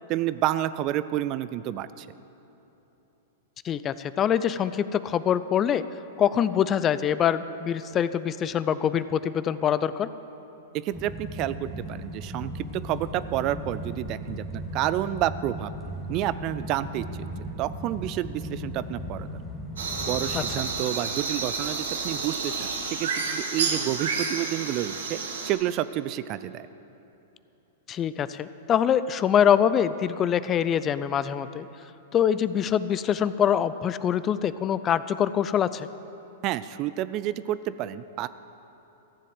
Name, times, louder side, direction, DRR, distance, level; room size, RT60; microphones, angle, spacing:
voice 1, 0.1-2.1 10.7-15.7 16.1-17.3 17.6-19.3 20.1-26.7 36.4-38.3, right 13 dB, 40° right, 15 dB, 0.4 m, -29 dB
voice 2, 3.6-5.8 6.2-10.1 20.3-20.4 27.9-31.7 32.1-35.9, left 9 dB, 30° left, 15 dB, 0.4 m, -24 dB
sound 1, 10.9-20.8, equal, 5° left, 1.3 m, -37 dB
sound 2, 19.8-25.5, right 4 dB, 75° right, 1.6 m, -30 dB
14.5 x 7.5 x 7.7 m, 3.0 s
hypercardioid pair, 110°, 0 cm